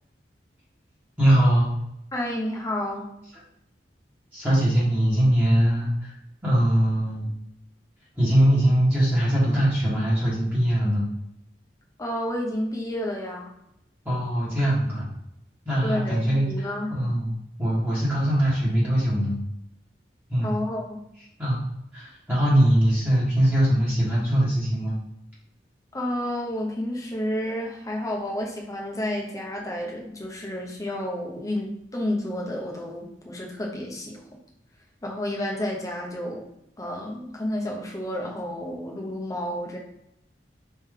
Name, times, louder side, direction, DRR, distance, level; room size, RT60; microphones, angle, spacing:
voice 1, 1.2-1.7 4.3-6.1 6.4-7.3 8.2-11.1 14.0-15.1 15.6-17.3 17.6-19.4 20.3-20.5 21.4-21.6 21.9-25.0, equal, 10° right, -8 dB, 1.4 m, -22 dB
voice 2, 2.1-3.1 12.0-13.5 15.8-17.0 20.4-21.0 25.9-34.2 35.0-36.5 36.8-39.8, left 1 dB, 20° left, -1 dB, 1.0 m, -30 dB
4.2 x 3.4 x 3.7 m, 0.80 s
head